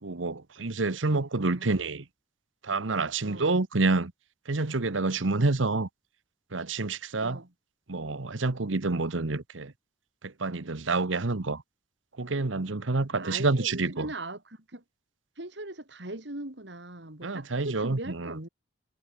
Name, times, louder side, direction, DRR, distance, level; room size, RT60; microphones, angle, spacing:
voice 1, 0.0-2.0 2.6-4.1 4.5-5.9 6.5-7.4 7.9-9.7 10.2-11.6 12.2-14.1 17.2-18.3, right 3 dB, 90° right, 1.2 m, -28 dB
voice 2, 3.2-3.6 7.2-7.5 13.1-14.8 15.4-18.5, right 2 dB, 65° right, 3.1 m, -40 dB
head